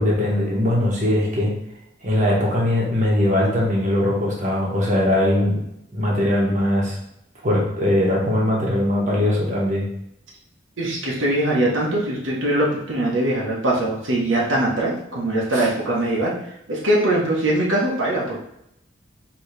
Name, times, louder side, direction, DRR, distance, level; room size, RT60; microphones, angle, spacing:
voice 1, 0.0-1.5 2.0-5.6 5.9-7.0 7.4-9.9 15.5-15.7, left 1 dB, 40° right, -4 dB, 1.3 m, -20 dB
voice 2, 10.8-16.3 16.7-18.4, right 1 dB, 90° right, -4 dB, 1.1 m, -21 dB
4.5 x 3.1 x 3.3 m, 0.78 s
head